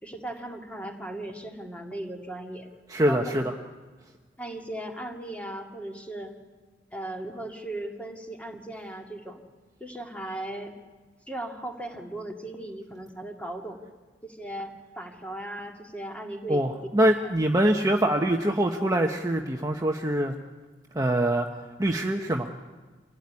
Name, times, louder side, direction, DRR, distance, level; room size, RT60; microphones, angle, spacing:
voice 1, 0.0-2.7 3.1-3.4 4.4-6.3 6.9-9.4 9.8-10.7 11.3-13.8 14.2-16.6 17.2-17.3, right 1 dB, 5° left, 2 dB, 2.3 m, -37 dB
voice 2, 2.9-3.4 16.5-20.3 20.9-21.5 21.8-22.5, right 1 dB, 20° right, 2 dB, 1.0 m, -24 dB
26.0 x 16.5 x 9.7 m, 1.4 s
head